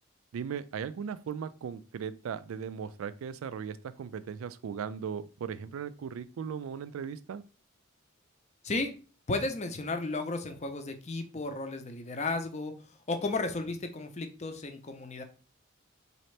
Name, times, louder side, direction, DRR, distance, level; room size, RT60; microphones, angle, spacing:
voice 1, 0.3-7.4, right 7 dB, 80° right, 14 dB, 0.3 m, -38 dB
voice 2, 9.3-12.7 13.1-15.2, left 3 dB, 35° left, 7 dB, 0.5 m, -33 dB
4.1 x 2.8 x 3.2 m, 0.35 s
head